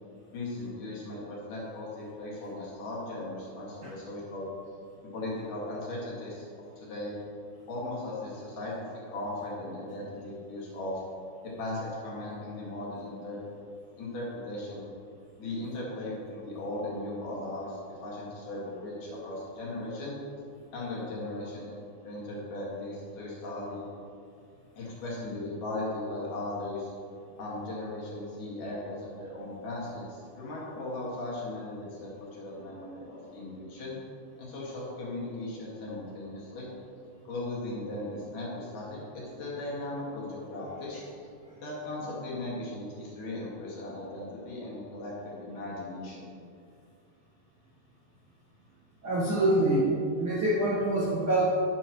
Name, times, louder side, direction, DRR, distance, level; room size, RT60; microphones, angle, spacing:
voice 1, 0.3-4.5 5.1-6.5 6.8-7.2 7.7-11.0 11.4-13.4 14.0-14.9 15.4-20.2 20.7-21.7 22.0-23.9 24.7-26.9 27.4-34.0 34.4-36.7 37.2-41.0 41.6-46.3, left 2 dB, 55° left, -5 dB, 3.2 m, -37 dB
voice 2, 49.0-49.9 50.2-51.4, right 1 dB, 80° right, -7 dB, 1.1 m, -25 dB
11.5 x 9.2 x 3.1 m, 2.3 s
omnidirectional pair, 4.9 m